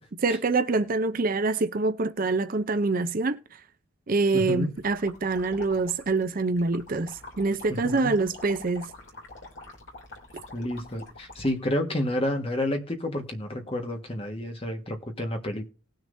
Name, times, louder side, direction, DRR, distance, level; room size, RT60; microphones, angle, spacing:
voice 1, 0.2-3.4 4.1-8.9, right 3 dB, 40° right, 0.5 m, -25 dB
voice 2, 4.3-4.7 7.7-8.2 10.5-15.7, left 1 dB, 25° left, 1.5 m, -30 dB
sound 1, 4.8-11.5, left 2 dB, 55° left, 2.9 m, -46 dB
19.0 x 6.5 x 2.7 m
head